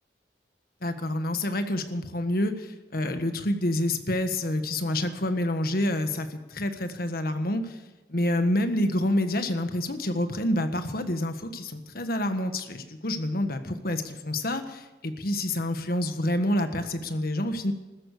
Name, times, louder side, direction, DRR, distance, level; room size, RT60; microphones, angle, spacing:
voice 1, 0.8-7.8 8.1-17.7, left 1 dB, 55° left, 8 dB, 1.5 m, -28 dB
16.0 x 13.5 x 6.6 m, 1.1 s
head